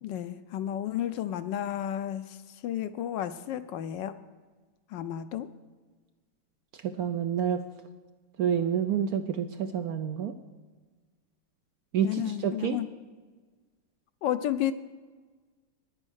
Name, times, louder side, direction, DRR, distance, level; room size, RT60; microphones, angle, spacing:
voice 1, 0.0-2.4 2.6-4.1 4.9-5.5 12.0-12.9 14.2-14.7, left 11 dB, 75° left, 12 dB, 1.1 m, -32 dB
voice 2, 6.8-7.6 8.4-10.3 11.9-12.8, right 8 dB, 75° right, 9 dB, 0.8 m, -28 dB
10.5 x 9.8 x 6.4 m, 1.4 s
omnidirectional pair, 2.2 m